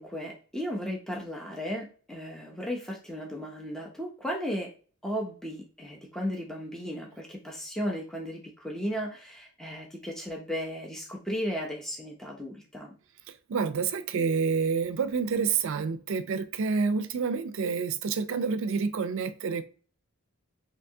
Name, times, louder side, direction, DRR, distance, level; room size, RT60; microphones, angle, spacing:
voice 1, 0.0-4.7 5.0-12.9, equal, ahead, 0.4 m, -35 dB
voice 2, 13.5-19.6, right 5 dB, 60° right, 0.4 m, -28 dB
3.4 x 2.7 x 2.6 m
head